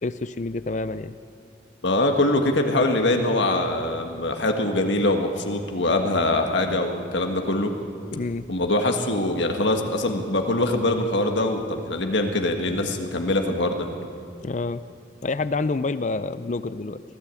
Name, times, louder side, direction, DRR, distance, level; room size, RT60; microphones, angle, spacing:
voice 1, 0.0-1.1 8.1-8.5 14.4-14.8 15.2-17.0, left 3 dB, 40° left, 14 dB, 0.4 m, -28 dB
voice 2, 1.8-7.7 8.5-13.9, left 2 dB, 70° left, 4 dB, 1.6 m, -23 dB
23.0 x 15.5 x 8.4 m, 2.6 s
head